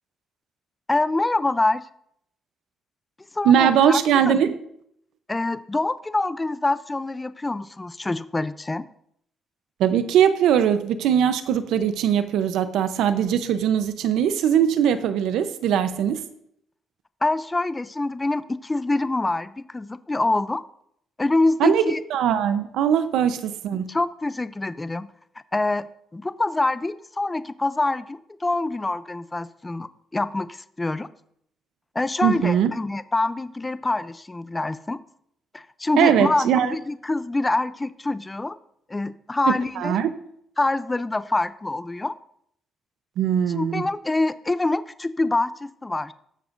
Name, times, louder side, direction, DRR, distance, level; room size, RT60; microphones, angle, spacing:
voice 1, 0.9-1.8 3.3-4.0 4.3-4.4 5.3-8.8 17.2-20.6 21.2-22.0 23.9-25.1 25.5-31.1 32.0-35.0 35.5-38.6 38.9-40.0 40.6-42.1 43.5-46.1, left 2 dB, 20° left, 0.5 m, -25 dB
voice 2, 3.4-4.6 9.8-16.3 21.6-21.8 22.1-23.9 32.2-32.7 36.0-36.7 39.5-40.1 43.2-43.9, right 9 dB, 85° right, 0.7 m, -20 dB
19.0 x 7.0 x 2.6 m
cardioid pair, 90°, 0 cm